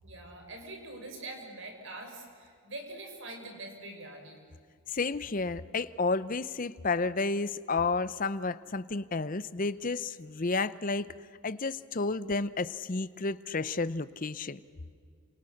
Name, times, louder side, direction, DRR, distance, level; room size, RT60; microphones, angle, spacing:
voice 1, 0.0-4.4, right 2 dB, 60° right, 3 dB, 5.8 m, -44 dB
voice 2, 4.9-11.1 11.4-14.6, left 3 dB, 40° left, 15 dB, 0.7 m, -31 dB
29.5 x 27.5 x 6.5 m, 2.2 s
head